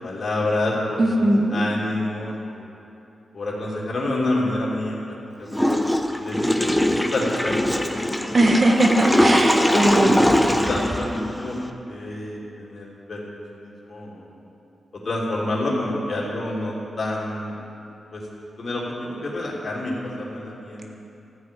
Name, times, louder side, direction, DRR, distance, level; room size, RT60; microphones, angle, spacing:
voice 1, 0.0-2.7 3.3-5.5 5.8-8.5 9.1-9.2 9.4-11.6 11.9-13.2 13.5-14.5 15.0-17.6 18.1-18.2 18.6-21.0, left 1 dB, 55° left, -5 dB, 3.0 m, -28 dB
voice 2, 1.0-1.6 8.3-10.2, right 1 dB, 45° right, 2 dB, 1.3 m, -19 dB
Water / Toilet flush, 5.5-11.7, left 1 dB, 5° left, 0.7 m, -22 dB
14.5 x 4.9 x 8.7 m, 2.8 s
cardioid pair, 70°, 0 cm